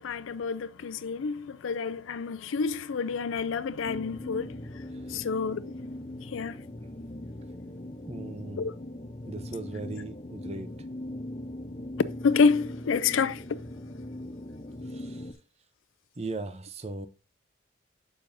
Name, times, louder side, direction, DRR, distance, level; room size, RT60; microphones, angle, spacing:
voice 1, 0.0-4.5 5.1-5.6 6.3-6.6 8.6-8.7 12.2-13.6, left 5 dB, 90° left, 0.4 m, -28 dB
sound 1, 3.8-15.3, left 1 dB, 30° left, 0.6 m, -40 dB
voice 2, 8.1-8.7 9.3-10.7 14.9-15.3 16.2-17.1, right 2 dB, 35° right, 0.6 m, -38 dB
7.4 x 6.7 x 2.6 m
head